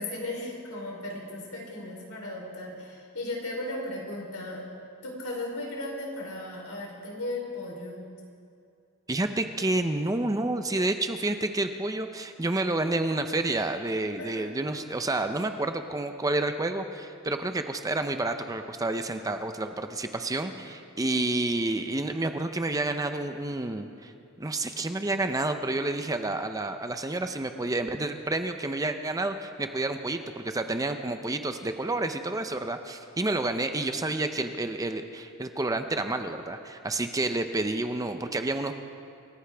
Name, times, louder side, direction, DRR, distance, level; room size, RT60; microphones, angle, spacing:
voice 1, 0.0-4.6 5.0-8.0 14.2-14.7, left 1 dB, 75° left, -1 dB, 3.5 m, -36 dB
voice 2, 9.1-24.1 24.4-38.7, right 2 dB, 15° right, 7 dB, 0.6 m, -29 dB
26.5 x 14.5 x 3.4 m, 2.4 s
head